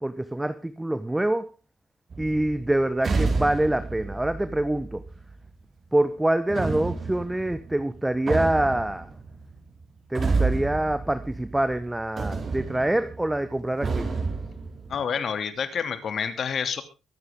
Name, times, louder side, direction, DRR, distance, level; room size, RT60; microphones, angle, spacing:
voice 1, 0.0-1.5 2.2-5.0 5.9-9.1 10.1-14.1, right 1 dB, 10° right, 12 dB, 1.1 m, -25 dB
sound 1, 2.1-5.5 6.5-11.9 12.2-15.0, right 4 dB, 45° right, 5.0 m, -30 dB
voice 2, 14.9-16.8, left 7 dB, 55° left, 9 dB, 2.9 m, -28 dB
23.0 x 9.6 x 3.8 m, 0.30 s
cardioid pair, 90°, 0 cm